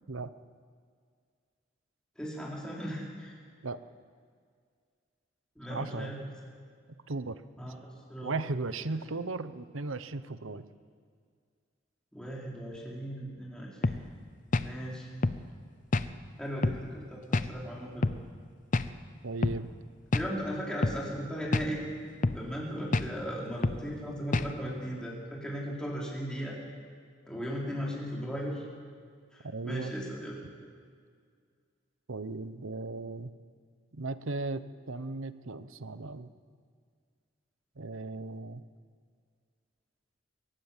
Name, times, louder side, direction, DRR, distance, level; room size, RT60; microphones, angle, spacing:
voice 1, 2.2-3.3 5.6-6.3 7.6-7.8 8.1-8.3 12.1-14.0 14.6-15.1 16.4-18.1 20.1-21.9 22.3-26.6 27.3-28.6 29.3-30.3, equal, 5° left, -4 dB, 4.4 m, -37 dB
voice 2, 5.7-6.1 7.1-7.4 8.2-10.6 19.2-19.7 29.4-29.9 32.1-33.3 33.9-36.3 37.8-38.6, right 3 dB, 80° right, 13 dB, 1.0 m, -36 dB
sound 1, 13.8-14.0 14.5-14.7 15.2-15.4 15.9-16.1 16.6-16.8 17.3-17.5 18.0-18.2 18.7-18.9 19.4-19.6 20.1-20.3 20.8-21.0 21.5-21.7 22.2-22.4 22.9-23.1 23.6-23.8 24.3-24.5, left 2 dB, 40° left, 0.6 m, -27 dB
23.0 x 18.5 x 7.4 m, 2.1 s
head